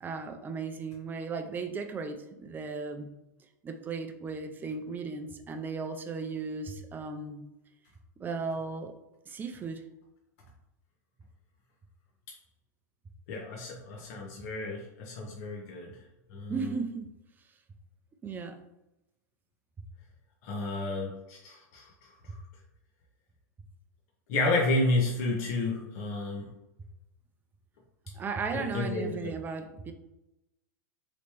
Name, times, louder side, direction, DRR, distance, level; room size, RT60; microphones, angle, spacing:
voice 1, 0.0-3.1 3.6-7.5 8.2-8.9 9.3-9.8 16.5-17.1 18.2-18.6 28.1-29.9, right 4 dB, 20° right, 6 dB, 0.4 m, -36 dB
voice 2, 13.3-16.0 16.3-16.7 20.4-22.4 24.3-26.5 28.5-29.3, left 2 dB, 55° left, -1 dB, 0.7 m, -31 dB
3.2 x 3.1 x 2.9 m, 0.93 s
hypercardioid pair, 115°, 10 cm